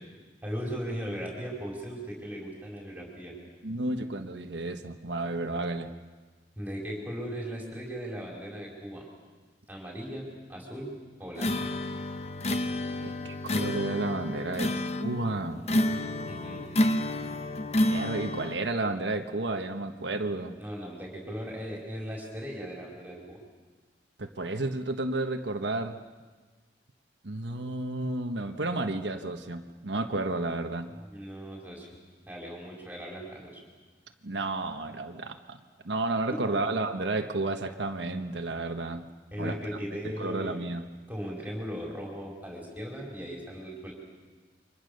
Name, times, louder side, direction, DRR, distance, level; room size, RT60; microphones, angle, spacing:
voice 1, 0.4-3.3 6.5-9.0 9.7-11.6 16.3-16.6 20.6-23.4 31.0-31.9 32.3-33.6 36.3-36.6 39.3-40.6 41.1-43.9, equal, 10° right, -2 dB, 4.7 m, -38 dB
voice 2, 3.6-5.9 13.0-15.6 17.8-20.6 24.2-26.0 27.2-30.9 34.2-35.6 35.8-39.1 39.4-39.6 40.0-40.8, right 2 dB, 75° right, 5 dB, 1.3 m, -32 dB
sound 1, 11.4-18.6, left 1 dB, 35° left, 1.0 m, -29 dB
29.5 x 25.0 x 6.7 m, 1.4 s
head